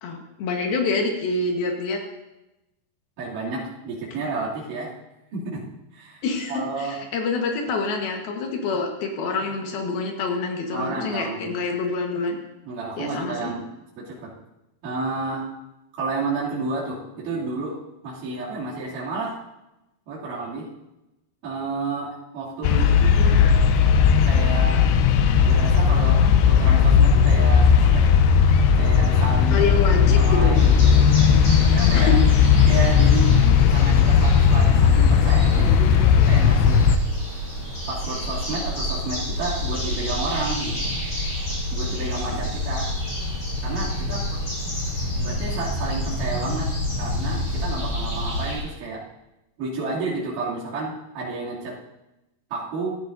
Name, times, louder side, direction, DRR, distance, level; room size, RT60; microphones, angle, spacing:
voice 1, 0.0-2.0 6.2-12.4 13.0-13.5 29.5-30.5 31.9-32.2 42.3-42.4, left 3 dB, 70° left, 3 dB, 3.1 m, -26 dB
voice 2, 3.2-4.9 5.3-5.6 5.9-6.2 6.5-7.0 10.7-11.6 12.6-13.7 14.0-14.3 14.8-15.4 16.0-19.4 20.1-20.7 21.4-23.4 24.2-24.8 25.4-28.1 28.8-29.6 30.0-31.0 31.7-32.1 32.7-33.3 33.7-36.8 37.9-40.9 41.7-42.9 43.6-44.4 45.2-46.7 47.0-49.0 49.6-51.8 52.5-52.9, right 3 dB, 55° right, -8 dB, 4.0 m, -31 dB
sound 1, 22.6-37.0, left 7 dB, 90° left, 2.9 m, -16 dB
sound 2, 30.5-48.6, left 1 dB, 35° left, 5.6 m, -29 dB
16.0 x 12.5 x 2.7 m, 0.94 s
omnidirectional pair, 4.9 m